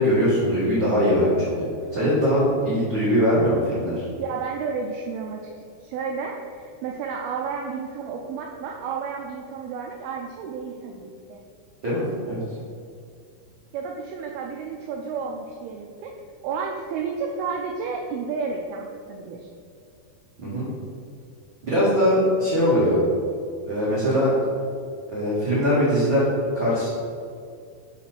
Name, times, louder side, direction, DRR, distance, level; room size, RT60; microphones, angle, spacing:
voice 1, 0.0-1.7 1.9-4.1 11.8-12.4 20.4-20.6 21.6-22.9 23.6-24.3 25.1-26.3 26.5-26.9, equal, 55° right, -10 dB, 1.4 m, -21 dB
voice 2, 4.2-5.4 5.8-11.4 13.7-16.2 16.4-19.5, right 5 dB, 85° right, 1 dB, 2.2 m, -31 dB
6.2 x 4.1 x 6.0 m, 2.3 s
omnidirectional pair, 4.9 m